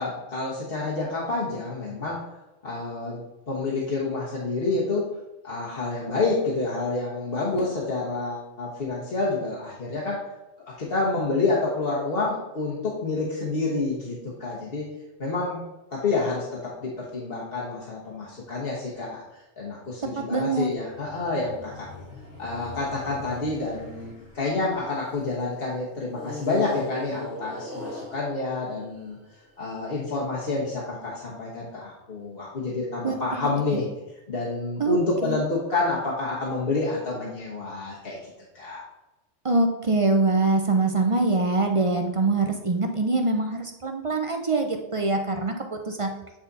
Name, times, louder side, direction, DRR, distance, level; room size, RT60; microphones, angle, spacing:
voice 1, 0.0-2.2 2.6-3.2 3.5-5.1 5.4-10.2 10.8-14.9 15.2-15.6 15.9-19.2 19.6-21.9 22.4-29.2 29.6-33.8 34.3-38.2 38.5-38.8, left 3 dB, 55° left, -5 dB, 1.4 m, -28 dB
voice 2, 20.2-20.7 33.0-33.1 33.7-33.8 34.8-35.0 35.2-35.4 39.4-46.1, right 3 dB, 40° right, 4 dB, 0.5 m, -24 dB
sound 1, 20.7-25.3 26.1-29.5, left 2 dB, 85° left, 2.2 m, -40 dB
8.6 x 4.2 x 4.0 m, 0.98 s
omnidirectional pair, 1.2 m